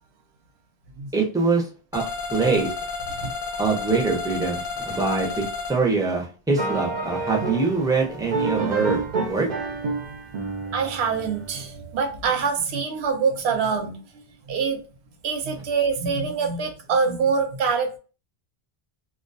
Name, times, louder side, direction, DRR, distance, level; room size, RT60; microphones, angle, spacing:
voice 1, 1.1-1.7 1.9-2.0 2.3-2.7 3.6-9.5, right 4 dB, 5° right, -1 dB, 0.4 m, -24 dB
sound 1, 1.9-5.8, left 4 dB, 60° left, 0.7 m, -31 dB
sound 2, 6.6-11.8, right 3 dB, 55° right, 0.5 m, -29 dB
voice 2, 10.7-14.8 15.2-18.0, right 5 dB, 85° right, 4 dB, 0.8 m, -25 dB
2.3 x 2.2 x 2.5 m, 0.35 s
omnidirectional pair, 1.1 m